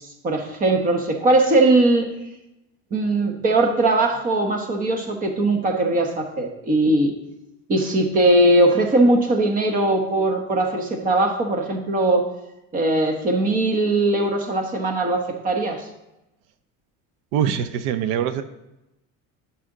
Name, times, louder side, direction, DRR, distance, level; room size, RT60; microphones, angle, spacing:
voice 1, 0.0-2.1 2.9-7.1 7.7-12.3 12.7-15.9, right 2 dB, 25° right, 4 dB, 1.1 m, -20 dB
voice 2, 17.3-18.4, right 9 dB, 85° right, 11 dB, 0.7 m, -23 dB
11.0 x 5.8 x 3.8 m, 0.94 s
cardioid pair, 180°, 31 cm